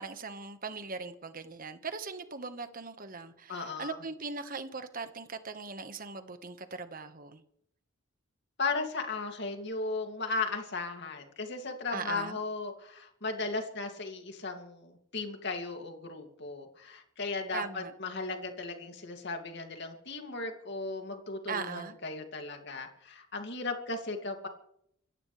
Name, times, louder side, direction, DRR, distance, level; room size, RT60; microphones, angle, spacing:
voice 1, 0.0-7.4 11.9-12.4 17.5-17.9 21.5-22.0, right 4 dB, 45° right, 9 dB, 1.4 m, -40 dB
voice 2, 3.5-4.0 8.6-24.5, left 3 dB, 55° left, 5 dB, 2.5 m, -36 dB
26.5 x 14.5 x 3.4 m, 0.71 s
head